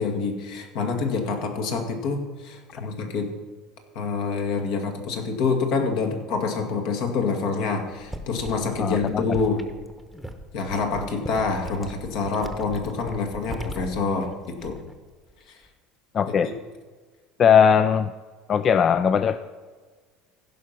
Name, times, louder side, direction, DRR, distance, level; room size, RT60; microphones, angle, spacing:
voice 1, 0.0-3.3 3.9-9.6 10.5-14.8, left 4 dB, 70° left, 4 dB, 2.1 m, -26 dB
sound 1, 8.0-15.0 15.3-15.7, right 1 dB, ahead, 1.0 m, -39 dB
voice 2, 8.8-9.2 16.1-16.5 17.4-18.1 18.5-19.5, left 7 dB, 35° left, 13 dB, 0.3 m, -19 dB
15.5 x 5.7 x 6.0 m, 1.4 s
cardioid pair, 135°, 0 cm